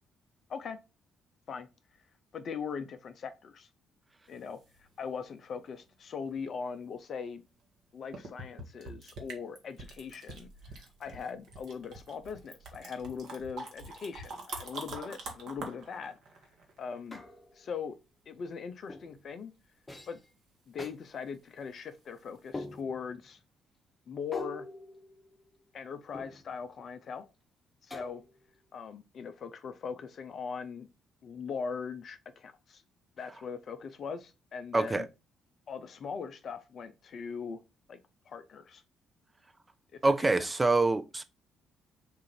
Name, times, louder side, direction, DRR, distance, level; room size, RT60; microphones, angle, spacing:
voice 1, 2.3-3.7 4.3-7.4 7.9-16.2 16.8-17.2 17.5-18.0 18.3-19.5 20.1-20.2 20.7-23.4 24.1-24.7 25.7-27.2 27.8-28.2 28.7-30.9 31.2-32.8 33.2-35.1 35.7-37.6 37.9-38.0 38.3-38.8 39.9-40.0, left 6 dB, 50° left, 0.4 m, -40 dB
sound 1, 4.3-5.3 7.6-7.7 8.1-17.2 22.2-22.3 22.7-22.8, right 3 dB, 60° right, 1.0 m, -45 dB
sound 2, 17.1-17.7 18.9-19.2 19.9-20.3 20.8-21.0 22.5-23.2 24.3-25.6 26.1-26.7 27.9-28.5, left 2 dB, 25° left, 0.8 m, -44 dB
voice 2, 34.7-35.0 40.0-41.2, right 2 dB, 20° right, 0.5 m, -25 dB
3.7 x 2.5 x 4.3 m
figure-of-eight pair, 45°, 0 cm